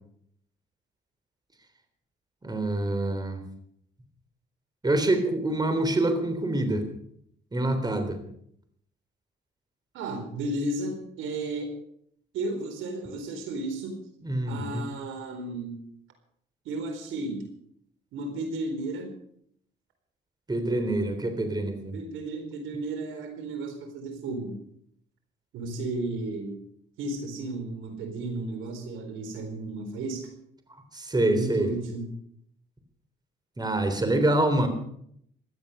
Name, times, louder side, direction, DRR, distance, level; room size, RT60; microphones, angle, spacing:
voice 1, 2.4-3.4 4.8-6.9 7.5-8.2 14.2-14.9 20.5-21.9 30.9-31.7 33.6-34.7, right 1 dB, 20° right, 7 dB, 3.5 m, -26 dB
voice 2, 9.9-11.7 12.3-14.0 14.5-15.8 16.6-17.4 18.1-19.1 21.9-24.6 25.5-26.6 27.0-30.3 31.3-32.0, right 2 dB, 90° right, 5 dB, 4.2 m, -33 dB
17.0 x 12.0 x 6.8 m, 0.69 s
cardioid pair, 90°, 20 cm